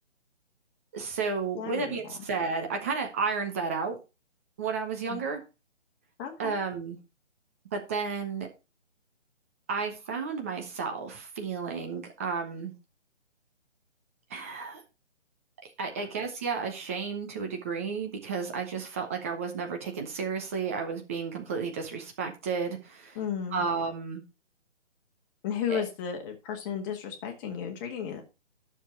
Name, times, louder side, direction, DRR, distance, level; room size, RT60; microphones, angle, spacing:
voice 1, 0.9-4.0 4.6-5.4 6.4-7.0 7.7-8.5 9.7-12.7 14.3-14.8 15.6-23.2 23.5-24.2 25.7-25.8, right 5 dB, 10° right, 4 dB, 0.7 m, -32 dB
voice 2, 1.6-2.0 5.1-5.2 6.2-6.6 15.9-16.0 23.1-23.6 25.4-28.2, left 8 dB, 15° left, 3 dB, 1.7 m, -34 dB
11.0 x 6.9 x 4.4 m, 0.28 s
figure-of-eight pair, 145°, 36 cm